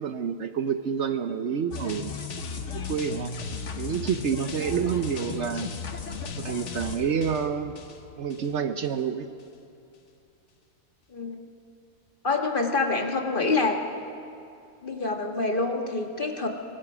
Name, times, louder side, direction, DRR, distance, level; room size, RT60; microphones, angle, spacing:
voice 1, 0.0-2.1 2.7-3.3 3.7-5.7 6.4-7.8 8.2-9.3, right 7 dB, 60° right, 9 dB, 0.9 m, -28 dB
sound 1, 1.7-8.5 8.8-9.0, left 5 dB, 60° left, 1.4 m, -36 dB
voice 2, 11.1-11.4 12.2-13.8 14.8-16.5, left 3 dB, 40° left, 3 dB, 1.6 m, -26 dB
24.5 x 19.0 x 6.1 m, 2.6 s
omnidirectional pair, 1.5 m